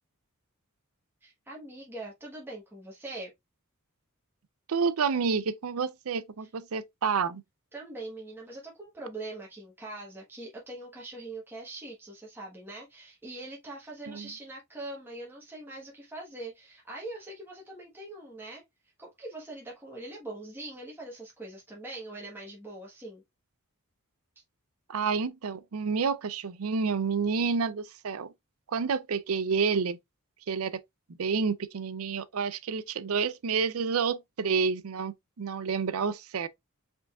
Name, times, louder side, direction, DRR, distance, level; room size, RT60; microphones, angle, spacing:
voice 1, 1.2-3.3 7.7-18.6 19.0-23.2, right 2 dB, 10° right, 1.2 m, -42 dB
voice 2, 4.7-7.4 14.1-14.3 24.9-28.3 28.7-30.0 30.5-30.8 31.2-36.5, right 5 dB, 70° right, 0.5 m, -29 dB
4.9 x 3.8 x 2.3 m
head